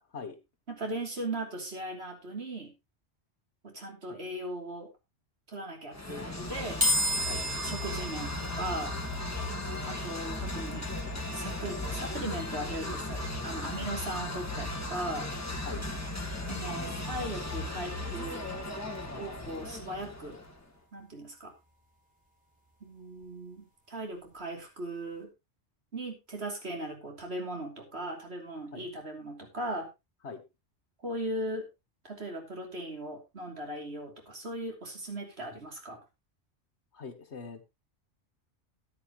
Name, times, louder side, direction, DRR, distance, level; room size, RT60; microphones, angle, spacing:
voice 1, 0.7-2.7 3.6-4.9 5.5-6.8 7.6-8.9 9.9-10.8 11.3-15.3 16.5-18.4 19.1-20.4 20.9-21.5 22.8-25.3 25.9-29.9 31.0-31.7 32.0-36.0, right 1 dB, 65° right, 2 dB, 3.2 m, -38 dB
sound 1, 5.9-20.6, left 2 dB, 15° left, 1.8 m, -36 dB
sound 2, 6.8-20.1, left 1 dB, 5° right, 3.4 m, -38 dB
voice 2, 36.9-37.6, left 5 dB, 70° left, 8 dB, 1.8 m, -42 dB
14.0 x 9.5 x 3.0 m, 0.24 s
omnidirectional pair, 1.2 m